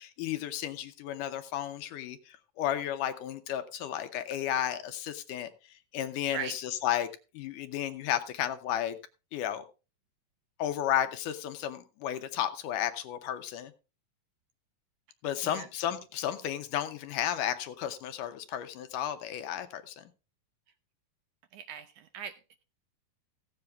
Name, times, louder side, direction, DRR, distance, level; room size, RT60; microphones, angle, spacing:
voice 1, 0.0-5.5 5.9-7.1 7.3-9.0 9.3-9.6 10.6-13.7 15.2-20.0, left 11 dB, 75° left, 9 dB, 2.2 m, -33 dB
voice 2, 21.5-22.6, right 8 dB, 75° right, 9 dB, 1.9 m, -40 dB
15.5 x 7.8 x 3.4 m, 0.31 s
omnidirectional pair, 4.0 m